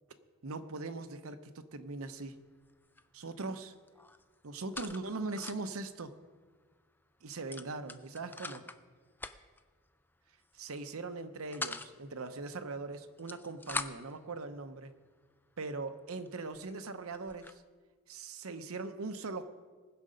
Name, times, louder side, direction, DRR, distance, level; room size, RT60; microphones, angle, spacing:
voice 1, 0.4-2.4 3.1-3.7 4.4-6.1 7.2-8.6 10.5-14.9 15.6-17.6 18.1-19.4, right 3 dB, 65° right, 10 dB, 0.8 m, -40 dB
sound 1, 2.1-2.4 2.6-3.5 3.7-5.8 6.2-6.3 6.5-6.7 7.5-8.8 9.2-9.6 10.4-10.7 11.1-11.9 13.0-14.2 14.9-15.0 15.6-15.7 16.2-16.3 16.5-17.6, left 3 dB, 10° left, 0.3 m, -43 dB
19.5 x 6.6 x 5.1 m, 1.5 s
head